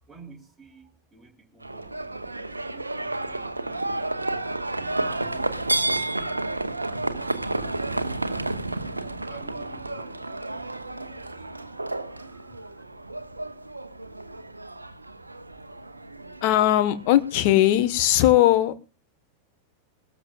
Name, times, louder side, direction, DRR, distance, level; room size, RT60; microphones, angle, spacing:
voice 1, 0.0-4.0 4.9-12.8, right 3 dB, 10° right, 1 dB, 3.5 m, -52 dB
Livestock farm animals working animals, 1.6-18.1, right 2 dB, 80° right, 0.9 m, -31 dB
voice 2, 16.4-18.9, left 13 dB, 45° left, 11 dB, 1.4 m, -19 dB
22.0 x 13.5 x 2.4 m, 0.30 s
figure-of-eight pair, 90°, 0 cm